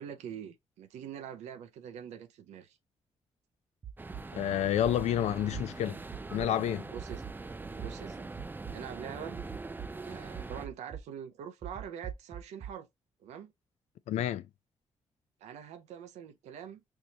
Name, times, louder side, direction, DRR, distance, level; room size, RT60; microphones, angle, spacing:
voice 1, 0.0-2.8 6.9-7.2 7.7-8.3 8.7-9.4 10.0-12.9 13.2-13.5 15.4-16.8, right 8 dB, 85° right, 0.5 m, -44 dB
sound 1, 3.8-4.2 4.8-5.1 5.5-5.6 6.1-6.5 6.9-7.3 7.8-7.9 8.3-8.7 9.3-9.9 10.3-11.0 11.6-12.7, right 9 dB, 40° right, 0.8 m, -41 dB
sound 2, 4.0-10.7, right 3 dB, 15° right, 0.3 m, -43 dB
voice 2, 4.3-6.0 6.3-6.9 14.1-14.5, left 11 dB, 75° left, 0.4 m, -29 dB
4.6 x 2.7 x 2.8 m
supercardioid pair, 55°, 11 cm